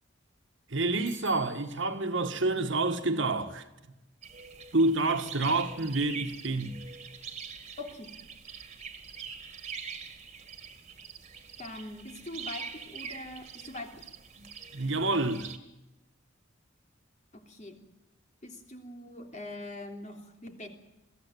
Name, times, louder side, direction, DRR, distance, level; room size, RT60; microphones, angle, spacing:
voice 1, 0.7-3.6 4.7-6.8 14.4-14.5 14.7-15.5, right 2 dB, 60° right, 1.8 m, -28 dB
Bicycle bell, 1.1-2.0, left 6 dB, 70° left, 3.4 m, -52 dB
sound 1, 4.2-15.6, right 6 dB, 35° right, 2.2 m, -44 dB
voice 2, 7.8-8.1 11.6-14.1 17.3-17.8 18.4-20.7, left 2 dB, 35° left, 3.2 m, -43 dB
22.5 x 16.0 x 9.3 m
head